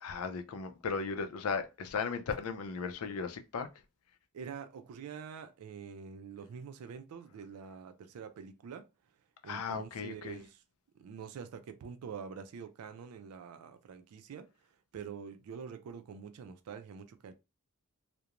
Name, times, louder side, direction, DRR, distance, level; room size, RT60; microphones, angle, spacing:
voice 1, 0.0-3.7 9.5-10.4, left 5 dB, 80° left, 0.4 m, -36 dB
voice 2, 4.3-8.9 9.4-10.6 11.0-14.5 14.9-17.3, right 6 dB, 85° right, 0.3 m, -46 dB
2.4 x 2.1 x 2.8 m
head